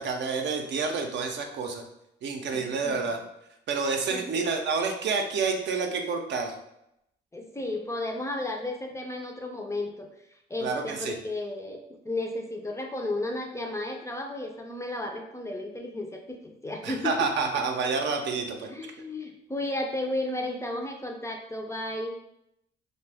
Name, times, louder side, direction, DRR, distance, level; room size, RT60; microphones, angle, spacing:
voice 1, 0.0-1.8 2.2-3.2 3.7-6.5 10.6-11.1 16.8-18.7, right 4 dB, 65° right, 3 dB, 0.5 m, -29 dB
voice 2, 2.5-3.0 4.1-4.2 7.3-10.1 10.5-11.8 12.0-17.2 18.7-22.2, left 2 dB, 15° left, 2 dB, 0.4 m, -33 dB
2.5 x 2.1 x 3.3 m, 0.80 s
cardioid pair, 90°, 20 cm